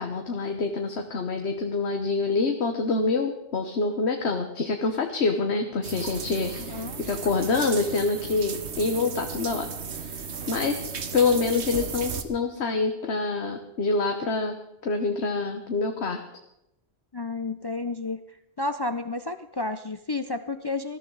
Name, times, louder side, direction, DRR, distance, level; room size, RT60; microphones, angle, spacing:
voice 1, 0.0-14.6 14.8-16.2, left 4 dB, 80° left, 4 dB, 1.4 m, -26 dB
sound 1, 5.8-12.2, right 5 dB, 85° right, 1.4 m, -35 dB
voice 2, 6.6-7.0 17.1-18.2 18.6-21.0, left 3 dB, 30° left, 10 dB, 0.5 m, -31 dB
20.0 x 14.0 x 4.0 m, 0.85 s
omnidirectional pair, 1.1 m